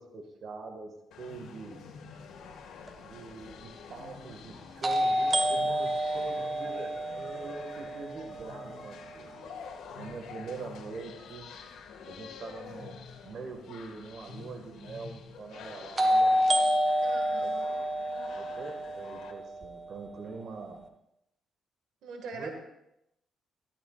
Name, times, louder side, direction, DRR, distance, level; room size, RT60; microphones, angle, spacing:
voice 1, 0.0-1.8 3.0-9.3 10.0-11.5 12.0-13.0 13.2-16.4 17.4-17.5 18.4-20.8 22.3-22.5, right 4 dB, 60° right, 3 dB, 1.8 m, -43 dB
sound 1, 1.1-19.3, left 6 dB, 80° left, 1.8 m, -47 dB
sound 2, 2.9-3.0 4.8-8.7 16.0-20.0, equal, 30° right, 1.4 m, -28 dB
voice 2, 17.0-17.8 22.0-22.5, right 4 dB, 80° right, 3 dB, 1.8 m, -42 dB
14.0 x 13.5 x 2.5 m, 0.82 s
cardioid pair, 90°, 0 cm